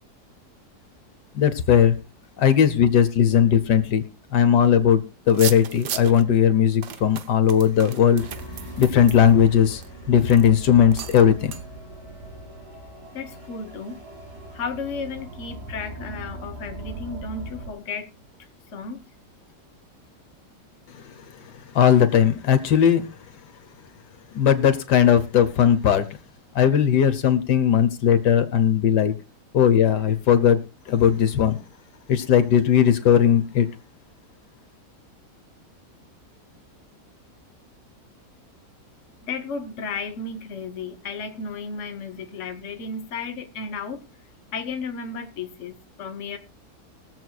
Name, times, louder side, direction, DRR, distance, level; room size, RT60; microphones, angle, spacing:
voice 1, 1.3-2.0 2.4-4.0 4.3-8.2 8.8-9.8 10.1-11.5 21.7-23.0 24.3-26.1 26.5-29.1 29.5-30.6 30.9-31.6 32.1-33.7, left 8 dB, 80° left, 1.5 m, -18 dB
sound 1, 5.3-6.2 6.8-9.9 10.3-10.5 10.9-11.2 11.5-11.6, right 9 dB, 80° right, 1.4 m, -35 dB
sound 2, 8.2-17.7, right 1 dB, 65° right, 3.2 m, -40 dB
voice 2, 13.1-14.0 14.5-18.1 18.7-19.0 39.2-44.1 44.5-46.4, left 4 dB, 50° left, 1.3 m, -33 dB
22.0 x 7.7 x 2.3 m
omnidirectional pair, 1.8 m